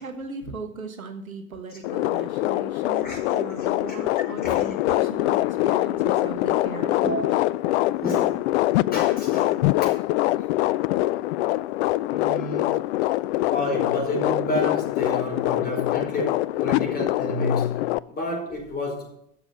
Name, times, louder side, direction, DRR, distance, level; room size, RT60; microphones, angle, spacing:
voice 1, 0.0-7.3, right 4 dB, 85° right, 6 dB, 1.2 m, -38 dB
sound 1, 1.8-18.0, left 17 dB, 55° left, 0.5 m, -24 dB
voice 2, 3.0-4.0 4.4-4.6 7.0-8.4 8.9-9.9 12.1-12.8 13.5-19.2, left 1 dB, 20° left, 1 dB, 5.0 m, -31 dB
12.5 x 7.1 x 6.6 m, 0.70 s
figure-of-eight pair, 75°, 41 cm